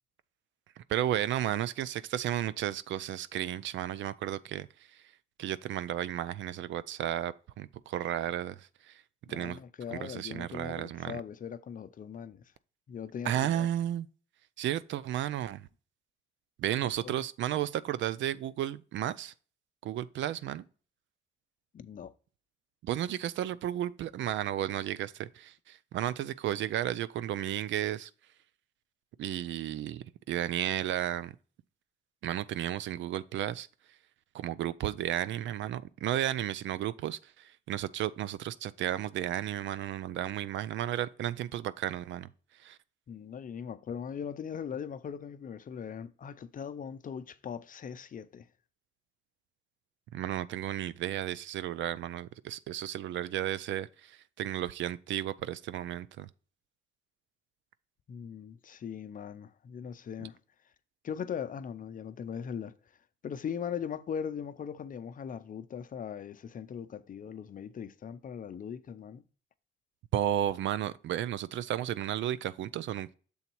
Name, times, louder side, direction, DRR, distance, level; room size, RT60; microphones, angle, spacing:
voice 1, 0.8-5.0 5.4-9.0 9.3-9.6 9.9-11.2 13.2-14.1 14.6-15.7 16.6-19.3 19.8-20.6 22.8-28.1 29.2-31.3 32.2-33.7 34.3-42.3 42.6-42.8 50.1-56.3 60.2-60.3 70.1-73.1, right 12 dB, 70° right, 0.4 m, -33 dB
voice 2, 9.3-12.4 12.9-13.7 16.7-17.2 21.7-22.1 43.1-48.5 58.1-60.4 61.0-62.7 63.2-69.2, left 7 dB, 45° left, 0.5 m, -40 dB
7.1 x 3.9 x 4.4 m
cardioid pair, 90°, 20 cm